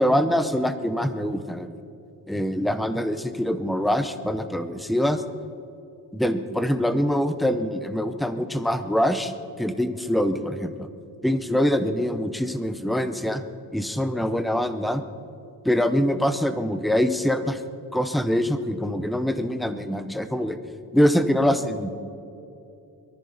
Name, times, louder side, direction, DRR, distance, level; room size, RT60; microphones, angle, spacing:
voice 1, 0.0-1.8 2.3-5.2 6.1-9.3 9.6-10.9 11.2-13.4 13.7-15.0 15.6-17.6 17.9-20.6 20.9-21.9, equal, ahead, 9 dB, 0.6 m, -24 dB
23.0 x 13.5 x 4.0 m, 2.7 s
wide cardioid pair, 175°, 37 cm